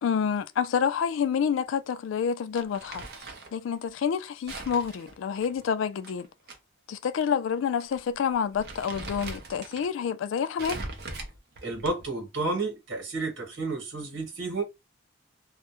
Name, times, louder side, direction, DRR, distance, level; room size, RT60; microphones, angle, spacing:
voice 1, 0.0-3.3 3.5-6.3 6.9-10.8, left 7 dB, 90° left, 0.3 m, -28 dB
Crumpling crinkling, 2.5-3.6 4.5-6.6 6.9-7.0 7.8-8.0 8.3-9.9 10.6-12.2, right 3 dB, 55° right, 0.5 m, -40 dB
voice 2, 11.6-14.6, right 3 dB, 70° right, 1.2 m, -31 dB
2.2 x 2.0 x 2.9 m
head